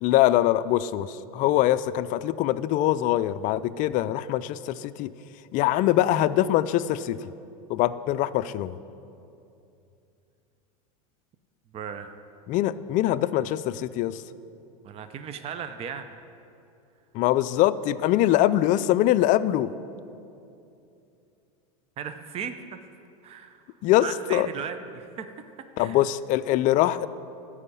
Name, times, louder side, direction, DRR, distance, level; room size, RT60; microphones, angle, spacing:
voice 1, 0.0-5.1 5.5-7.3 7.7-8.8 12.5-14.2 17.1-19.7 23.8-24.5 25.8-27.1, left 13 dB, 45° left, 14 dB, 0.4 m, -23 dB
voice 2, 11.7-12.1 14.8-16.1 22.0-22.8 23.2-23.6 24.0-25.3 25.8-26.0, right 7 dB, 35° right, 9 dB, 0.6 m, -36 dB
13.0 x 4.9 x 8.4 m, 2.7 s
supercardioid pair, 110°, 19 cm